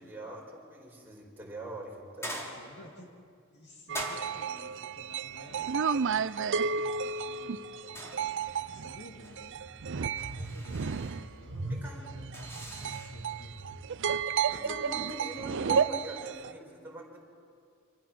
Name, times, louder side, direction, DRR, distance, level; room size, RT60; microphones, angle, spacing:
voice 1, 0.0-2.4 11.7-12.0 14.5-17.2, right 1 dB, 10° right, -2 dB, 4.9 m, -42 dB
sound 1, 2.2-3.0 3.9-4.7 8.0-8.7 9.0-9.4 10.2-11.3 12.3-13.2, equal, 15° left, 3.3 m, -42 dB
voice 2, 2.5-3.1 3.5-9.6 9.9-13.6, left 1 dB, 55° left, 1 dB, 2.5 m, -53 dB
sound 2, 3.9-11.3 12.1-16.5, right 6 dB, 60° right, 0.5 m, -32 dB
sound 3, 8.4-15.9, right 1 dB, 85° right, 1.3 m, -44 dB
28.0 x 26.5 x 6.0 m, 2.3 s
head